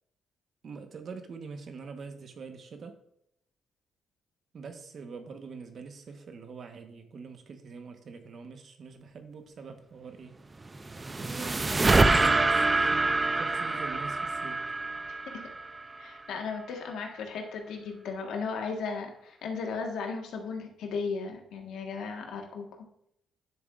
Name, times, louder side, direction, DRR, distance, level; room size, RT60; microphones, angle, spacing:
voice 1, 0.6-3.0 4.5-10.4 11.1-14.6, right 5 dB, 55° right, 1.2 m, -44 dB
sound 1, 10.6-16.0, right 3 dB, 25° right, 0.5 m, -26 dB
voice 2, 16.0-22.8, left 5 dB, 80° left, 1.5 m, -36 dB
10.5 x 7.1 x 2.5 m
cardioid pair, 90°, 0 cm